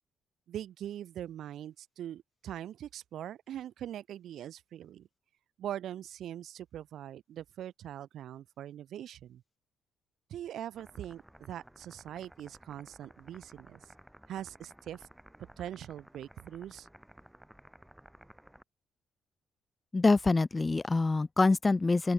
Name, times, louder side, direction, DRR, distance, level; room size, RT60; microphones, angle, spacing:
voice 1, 0.5-5.1 5.6-9.4 10.3-13.8 14.3-15.1 15.6-16.9, right 11 dB, 70° right, 0.4 m, -42 dB
sound 1, 10.7-18.6, right 1 dB, 5° right, 1.5 m, -56 dB
voice 2, 19.9-22.1, left 3 dB, 25° left, 0.6 m, -25 dB
open air
cardioid pair, 90°, 0 cm